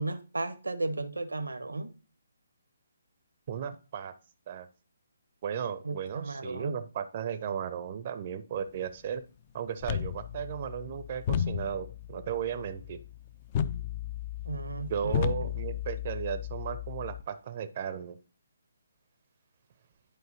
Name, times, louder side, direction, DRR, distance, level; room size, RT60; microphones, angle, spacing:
voice 1, 0.0-1.9 5.8-6.8 14.4-15.5, right 3 dB, 75° right, 11 dB, 0.7 m, -35 dB
voice 2, 3.5-4.1 4.5-4.7 5.4-9.2 9.5-13.0 14.9-18.2, right 8 dB, 35° right, 11 dB, 0.5 m, -35 dB
sound 1, 9.8-17.2, left 9 dB, 30° left, 0.4 m, -34 dB
10.5 x 4.5 x 2.7 m, 0.34 s
figure-of-eight pair, 140°, 0 cm